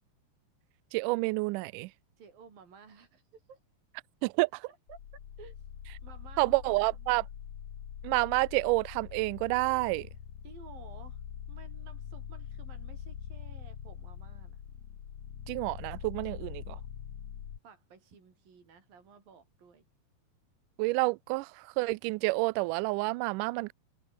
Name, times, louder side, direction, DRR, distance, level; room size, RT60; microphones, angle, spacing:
voice 1, 0.9-1.9 4.2-4.7 6.4-7.2 8.0-10.1 15.5-16.8 20.8-23.7, right 24 dB, 85° right, 1.8 m, -29 dB
voice 2, 2.2-3.6 4.7-5.0 5.4-5.6 6.0-6.9 10.4-11.2 11.5-14.6 16.2-16.6 17.6-19.8, right 6 dB, 70° right, 6.5 m, -54 dB
sound 1, 4.9-17.6, left 9 dB, 55° left, 3.1 m, -44 dB
omnidirectional pair, 4.2 m